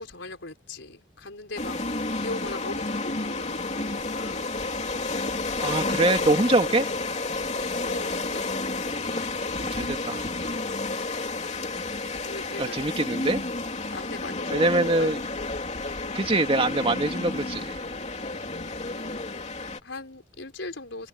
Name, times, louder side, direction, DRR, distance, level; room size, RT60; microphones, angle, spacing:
voice 1, 0.0-1.8 2.1-4.5 7.8-8.5 12.1-13.2 13.9-15.1 18.4-19.2 19.6-21.1, left 2 dB, 75° left, 4.4 m, -40 dB
Winter Wind Mix, 1.6-19.8, left 3 dB, 35° left, 3.2 m, -31 dB
voice 2, 5.6-6.9 9.6-10.3 12.6-13.4 14.5-15.2 16.1-17.9, right 2 dB, 30° right, 2.5 m, -24 dB
head